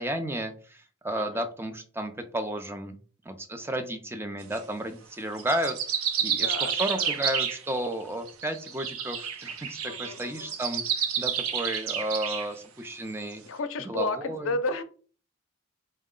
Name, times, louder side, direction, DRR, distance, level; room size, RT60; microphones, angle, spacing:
voice 1, 0.0-3.0 3.3-5.8 6.2-13.4 13.8-14.5, right 1 dB, 10° right, 0.4 m, -33 dB
voice 2, 1.2-1.5 6.3-7.2 9.8-10.5 13.4-14.8, left 2 dB, 65° left, 0.5 m, -33 dB
sound 1, 4.4-4.6 5.4-7.9 8.3-12.5, right 8 dB, 90° right, 0.6 m, -30 dB
4.4 x 2.1 x 3.7 m
head